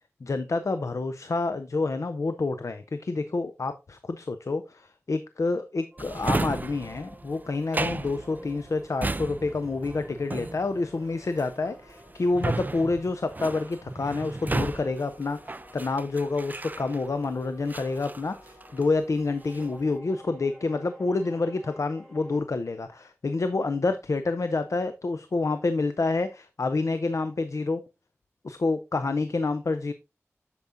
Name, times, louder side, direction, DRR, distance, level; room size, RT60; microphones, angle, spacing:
voice 1, 0.2-27.8 28.4-29.9, left 3 dB, 75° left, 0.5 m, -28 dB
sound 1, 5.9-22.4, equal, 5° left, 3.3 m, -52 dB
Drawer open or close, 6.0-17.2 17.7-19.0 19.3-19.8, right 2 dB, 35° right, 0.4 m, -34 dB
8.1 x 7.0 x 2.6 m
wide cardioid pair, 60°, 5 cm